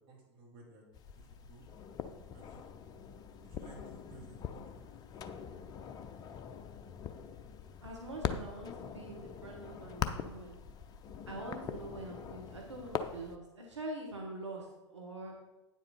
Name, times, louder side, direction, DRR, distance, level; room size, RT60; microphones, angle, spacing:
voice 1, 0.1-1.7 2.3-2.6 3.4-5.0 11.3-11.6, right 3 dB, 35° right, -3 dB, 3.3 m, -57 dB
sound 1, 0.9-13.4, left 7 dB, 25° left, 0.6 m, -43 dB
voice 2, 7.8-10.6 11.3-15.3, right 2 dB, 80° right, -1 dB, 1.4 m, -44 dB
9.3 x 7.4 x 4.3 m, 1.1 s
figure-of-eight pair, 90°, 15 cm